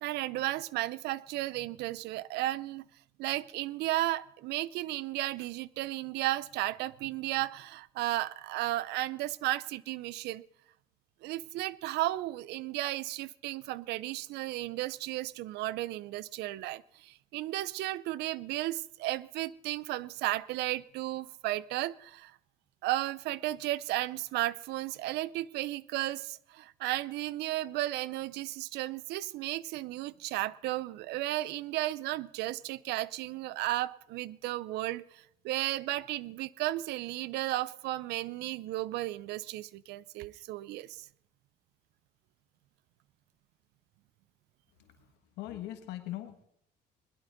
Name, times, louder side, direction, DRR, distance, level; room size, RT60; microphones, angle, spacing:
voice 1, 0.0-2.8 3.2-10.4 11.2-22.4 22.8-41.1, right 16 dB, 85° right, 21 dB, 0.5 m, -34 dB
voice 2, 44.8-46.5, left 14 dB, 85° left, 7 dB, 1.6 m, -42 dB
21.0 x 11.5 x 4.0 m, 0.73 s
cardioid pair, 110°, 17 cm